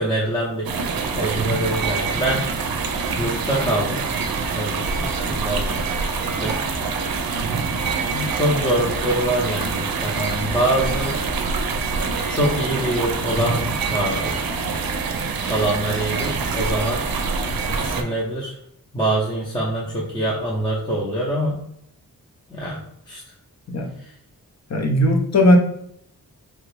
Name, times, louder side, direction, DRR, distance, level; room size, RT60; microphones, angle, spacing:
voice 1, 0.0-2.5 3.2-4.0 4.5-5.8 6.3-6.6 8.1-11.2 12.3-14.5 15.4-17.1 17.7-18.6 18.9-21.6 22.5-22.8 23.1-23.2 24.0-24.1, right 1 dB, 10° left, -5 dB, 0.7 m, -24 dB
sound 1, 0.7-18.0, right 4 dB, 75° right, 0.5 m, -25 dB
voice 2, 24.7-25.6, left 1 dB, 50° left, 3 dB, 0.7 m, -17 dB
3.2 x 2.4 x 3.2 m, 0.72 s
cardioid pair, 65°, 36 cm